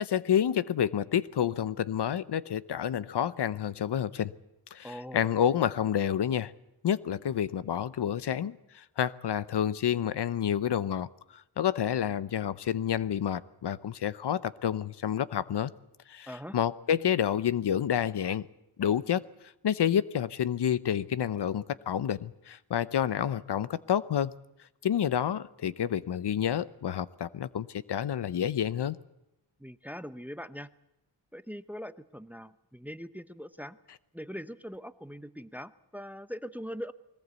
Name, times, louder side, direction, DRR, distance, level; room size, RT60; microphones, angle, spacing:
voice 1, 0.0-4.3 4.7-6.5 6.8-15.7 16.1-18.5 18.8-19.2 19.6-24.3 24.8-29.0, left 9 dB, 70° left, 17 dB, 0.8 m, -29 dB
voice 2, 4.8-5.3 16.3-16.6 29.6-30.7 31.3-33.8 34.1-36.9, equal, 5° right, 14 dB, 0.7 m, -41 dB
21.5 x 19.0 x 8.2 m, 0.87 s
wide cardioid pair, 90°, 42 cm